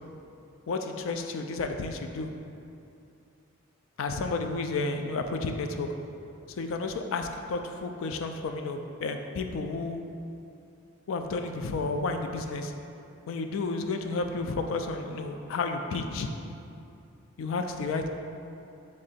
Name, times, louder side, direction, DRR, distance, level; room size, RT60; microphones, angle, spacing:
voice 1, 0.7-2.3 4.0-5.9 6.5-10.0 11.1-12.7 13.3-16.3 17.4-18.1, left 3 dB, 70° left, 6 dB, 0.3 m, -31 dB
3.7 x 3.2 x 4.1 m, 2.6 s
head